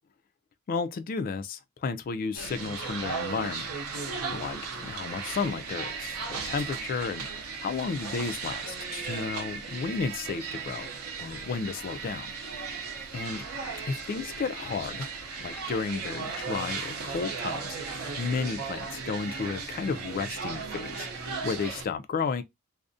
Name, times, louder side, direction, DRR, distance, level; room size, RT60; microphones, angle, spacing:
voice 1, 0.7-3.7 4.3-10.9 11.2-12.3 13.1-13.4 13.9-15.1 15.4-17.8 18.2-22.4, left 5 dB, 40° left, 0.3 m, -33 dB
sound 1, 2.3-21.8, right 5 dB, 90° right, 0.6 m, -36 dB
2.4 x 2.1 x 2.4 m
head